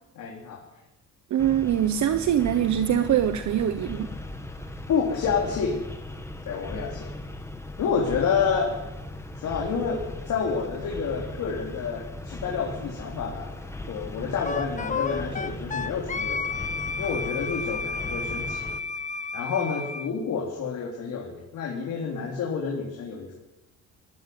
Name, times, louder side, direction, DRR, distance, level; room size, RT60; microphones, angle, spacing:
voice 1, 0.1-0.6 4.9-5.8 6.5-7.1 7.8-8.7 9.3-13.5 13.9-16.5 17.0-18.7 19.3-23.4, left 6 dB, 75° left, -2 dB, 3.8 m, -29 dB
voice 2, 1.3-4.1, right 10 dB, 70° right, 9 dB, 1.2 m, -23 dB
sound 1, 1.4-18.8, left 1 dB, 10° left, 2.2 m, -38 dB
Wind instrument woodwind instrument, 14.5-20.1, left 4 dB, 25° left, 1.0 m, -32 dB
18.5 x 14.5 x 9.6 m, 1.0 s
cardioid pair, 90°, 30 cm